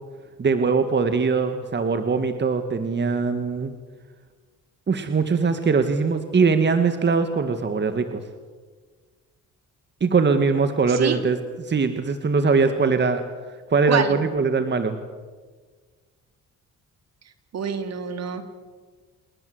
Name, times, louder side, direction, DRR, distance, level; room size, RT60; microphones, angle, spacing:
voice 1, 0.4-3.7 4.9-8.2 10.0-11.4 11.7-13.2 13.7-15.0, right 4 dB, 35° right, 8 dB, 1.9 m, -21 dB
voice 2, 10.9-11.2 13.9-14.2 17.5-18.5, right 7 dB, 60° right, 8 dB, 3.1 m, -26 dB
28.0 x 20.5 x 8.0 m, 1.5 s
cardioid pair, 90°, 30 cm